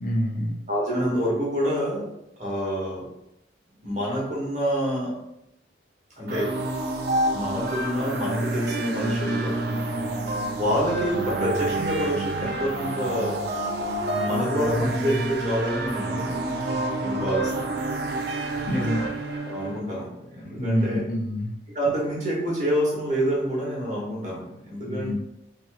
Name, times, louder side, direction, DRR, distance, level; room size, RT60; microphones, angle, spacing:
voice 1, 0.0-0.6 18.6-19.0 20.6-21.5 24.9-25.1, equal, 45° left, -2 dB, 0.7 m, -26 dB
voice 2, 0.7-2.1 2.4-3.1 3.8-5.1 6.2-6.6 7.3-9.6 10.5-13.4 14.1-16.4 17.0-17.7 19.4-21.1 21.7-25.1, equal, 40° right, -5 dB, 1.2 m, -27 dB
sound 1, 6.3-19.8, right 2 dB, 55° right, 0.5 m, -28 dB
4.5 x 2.9 x 2.4 m, 0.83 s
head